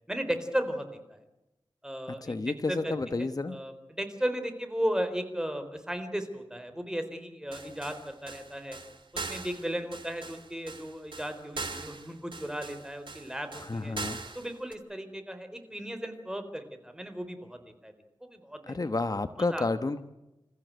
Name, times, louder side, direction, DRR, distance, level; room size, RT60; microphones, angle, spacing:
voice 1, 0.1-1.2 1.8-8.8 9.3-14.0 14.3-17.9 18.2-18.8 19.4-19.7, equal, 10° right, 8 dB, 4.1 m, -35 dB
voice 2, 2.2-3.6 13.5-14.2 18.7-20.0, left 3 dB, 45° left, 10 dB, 1.1 m, -30 dB
sound 1, 7.5-14.7, right 3 dB, 70° right, 2.5 m, -41 dB
28.0 x 14.5 x 9.3 m, 0.96 s
wide cardioid pair, 65°, 9 cm